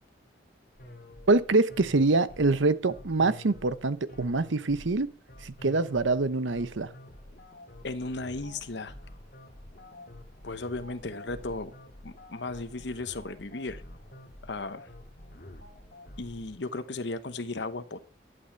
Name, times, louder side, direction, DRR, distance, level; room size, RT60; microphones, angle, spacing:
sound 1, 0.8-16.6, left 1 dB, 50° left, 1.9 m, -48 dB
voice 1, 1.3-5.1 5.4-6.9, right 3 dB, 85° right, 0.8 m, -25 dB
voice 2, 7.8-8.9 10.4-11.7 12.0-13.8 14.4-14.9 16.2-18.0, left 3 dB, 70° left, 1.0 m, -35 dB
11.5 x 7.9 x 5.8 m
head